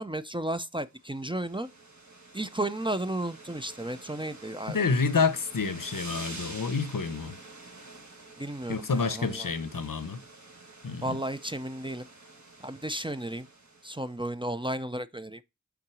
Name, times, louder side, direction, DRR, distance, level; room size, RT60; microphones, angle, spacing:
voice 1, 0.0-1.7 2.3-4.8 8.4-9.5 11.0-12.0 12.6-13.5 13.8-15.4, right 1 dB, 15° right, 0.4 m, -33 dB
sound 1, 0.9-14.2, right 3 dB, 55° right, 1.5 m, -48 dB
voice 2, 4.7-7.4 8.7-10.2 10.8-11.2, left 4 dB, 75° left, 0.7 m, -28 dB
5.9 x 3.8 x 6.0 m
wide cardioid pair, 40°, 33 cm